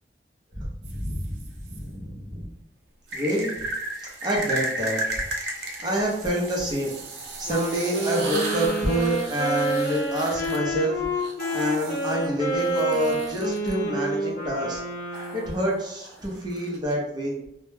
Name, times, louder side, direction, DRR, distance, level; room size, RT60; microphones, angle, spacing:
voice 1, 0.6-2.5 3.1-3.6 4.0-5.0 5.6-6.9 7.4-14.8 15.3-17.4, equal, 25° right, -3 dB, 0.6 m, -27 dB
sound 1, 0.8-1.8 3.1-13.7 15.1-16.9, right 2 dB, 70° right, 0.5 m, -35 dB
Wind instrument woodwind instrument, 7.4-15.7, right 1 dB, 45° left, 0.7 m, -29 dB
2.2 x 2.1 x 3.1 m, 0.79 s
head